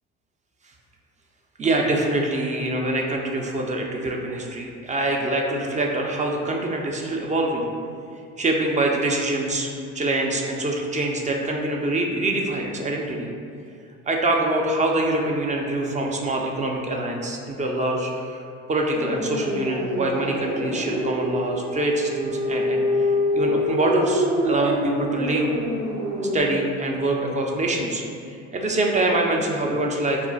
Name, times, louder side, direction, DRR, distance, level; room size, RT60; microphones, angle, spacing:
voice 1, 1.6-7.7 8.4-9.7 9.9-13.3 14.1-18.4 18.7-23.1 23.4-25.5 26.3-28.0 28.3-30.2, right 2 dB, 20° right, 0 dB, 0.3 m, -24 dB
sound 1, 18.9-26.4, left 1 dB, 90° right, 0.8 m, -26 dB
2.4 x 2.1 x 3.9 m, 2.4 s
hypercardioid pair, 65°, 36 cm